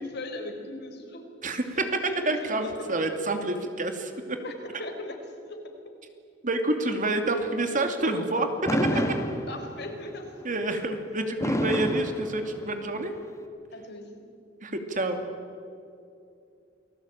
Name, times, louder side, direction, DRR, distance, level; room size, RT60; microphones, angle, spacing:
voice 1, 0.0-1.2 1.7-2.9 4.4-5.2 5.4-5.6 8.9-9.0 9.5-10.3 13.7-14.2, left 2 dB, 60° left, 4 dB, 4.5 m, -38 dB
voice 2, 1.4-1.8 2.3-4.4 6.4-8.5 10.4-13.1 14.6-15.2, right 2 dB, 45° right, 6 dB, 2.7 m, -28 dB
Fireworks, 8.7-10.0 11.4-13.0, equal, 15° left, 2.0 m, -28 dB
28.5 x 20.0 x 9.0 m, 2.6 s
head